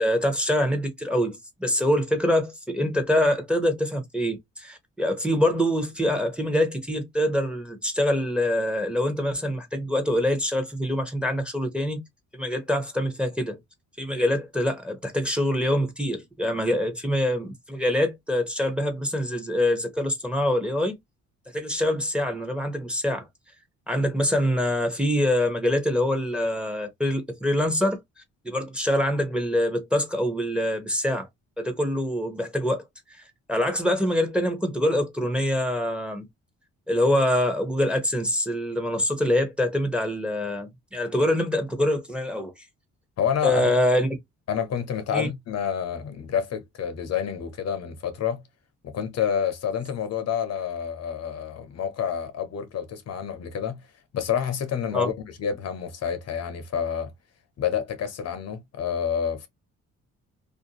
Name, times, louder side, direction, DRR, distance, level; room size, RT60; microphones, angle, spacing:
voice 1, 0.0-12.0 12.3-13.6 14.0-21.0 21.5-23.3 23.9-28.0 28.4-31.3 31.6-32.8 33.1-36.3 36.9-42.5 43.4-44.2 45.1-45.3 54.9-55.1, left 1 dB, 5° right, 0.7 m, -25 dB
voice 2, 43.2-43.6 44.5-48.4 48.8-53.8 54.1-57.1 57.6-59.5, left 8 dB, 55° left, 0.7 m, -28 dB
2.5 x 2.2 x 2.8 m
cardioid pair, 90°, 30 cm